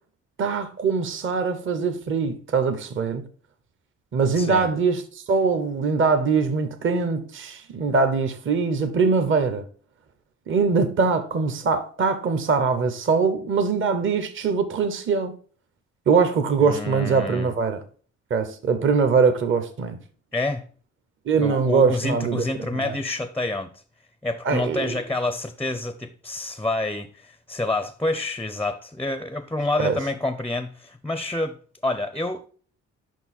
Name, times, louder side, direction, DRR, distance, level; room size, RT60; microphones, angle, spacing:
voice 1, 0.4-3.2 4.1-9.6 10.5-15.3 16.1-17.8 18.3-20.0 21.3-22.4 22.7-23.0 24.4-24.9 29.8-30.0, right 5 dB, 40° right, 0.8 m, -22 dB
voice 2, 4.4-4.7 16.6-17.5 20.3-20.6 21.4-23.7 24.2-31.6 31.8-32.5, left 2 dB, 5° left, 0.4 m, -28 dB
5.4 x 4.6 x 4.1 m
cardioid pair, 90°, 30 cm